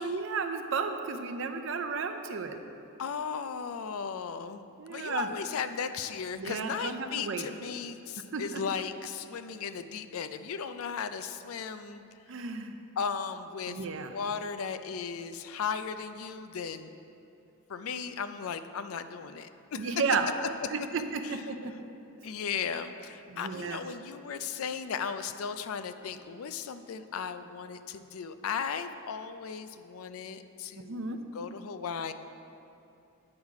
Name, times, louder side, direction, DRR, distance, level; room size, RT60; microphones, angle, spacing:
voice 1, 0.0-2.6 4.8-5.3 6.3-7.5 8.3-8.6 12.3-12.8 13.7-14.1 19.8-20.3 20.7-22.1 23.3-23.8 30.8-31.2, right 5 dB, 60° right, 7 dB, 0.5 m, -33 dB
voice 2, 3.0-4.6 4.9-12.0 13.0-16.9 17.7-19.9 21.2-21.4 22.2-32.1, left 6 dB, 75° left, 10 dB, 0.4 m, -36 dB
8.7 x 5.6 x 4.8 m, 2.6 s
head